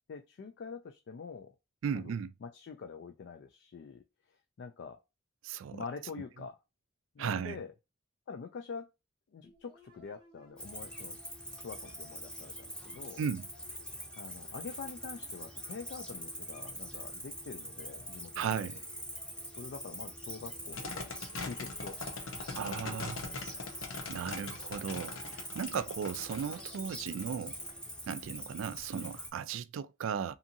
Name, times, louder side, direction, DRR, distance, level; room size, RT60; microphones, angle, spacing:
voice 1, 0.1-1.6 1.9-2.1 2.4-5.0 5.7-6.6 7.2-7.7 8.3-8.9 9.3-11.2 11.6-13.2 14.2-18.8 19.5-21.1 21.4-22.0 22.5-23.7, left 5 dB, 55° left, 0.3 m, -46 dB
voice 2, 1.8-2.3 5.4-5.8 7.2-7.6 13.2-13.5 18.4-18.8 22.6-23.2 24.1-27.5 28.1-30.3, right 7 dB, 80° right, 0.3 m, -36 dB
sound 1, 9.4-29.0, equal, 25° right, 0.9 m, -60 dB
Cricket, 10.6-29.3, equal, 5° left, 0.6 m, -44 dB
sound 2, 20.7-27.7, left 4 dB, 85° left, 0.7 m, -42 dB
2.7 x 2.5 x 2.6 m
head